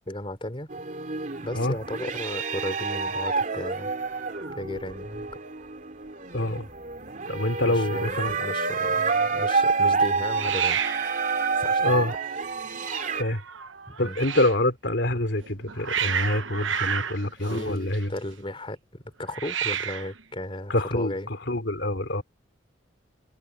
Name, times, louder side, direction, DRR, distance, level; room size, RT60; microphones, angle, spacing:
voice 1, 0.1-0.7 1.4-3.9 4.5-5.3 7.6-10.8 11.6-12.1 13.9-14.3 17.0-17.1 17.4-21.3, left 1 dB, 30° left, 3.4 m, -35 dB
sound 1, 0.7-13.2, right 4 dB, 45° right, 3.2 m, -28 dB
Hiss, 4.0-5.4 5.6-6.1 6.4-6.5 6.6-7.3 10.3-14.6 15.4-18.3 19.3-20.2, right 8 dB, 85° right, 1.1 m, -33 dB
voice 2, 6.3-6.7 7.3-8.4 11.8-12.1 13.1-13.4 14.0-18.1 20.7-21.1 21.5-22.2, left 1 dB, 65° left, 3.6 m, -26 dB
head